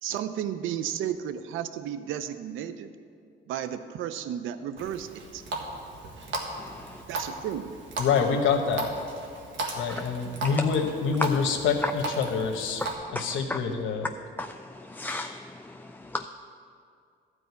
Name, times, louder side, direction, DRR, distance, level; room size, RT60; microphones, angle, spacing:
voice 1, 0.0-2.9 3.5-5.4 7.1-7.8, right 10 dB, 85° right, 11 dB, 0.5 m, -33 dB
Water tap faucet, 4.8-12.9, right 2 dB, 70° right, 1.6 m, -37 dB
voice 2, 6.6-7.0 9.9-10.0 10.5-10.6 11.2-11.3 11.8-11.9 12.8-13.6 14.4-16.3, left 2 dB, 10° left, 6 dB, 0.3 m, -34 dB
voice 3, 8.0-8.9 9.7-12.8 13.1-14.1, left 5 dB, 80° left, 2 dB, 1.0 m, -26 dB
12.5 x 4.9 x 8.1 m, 2.3 s
cardioid pair, 90°, 20 cm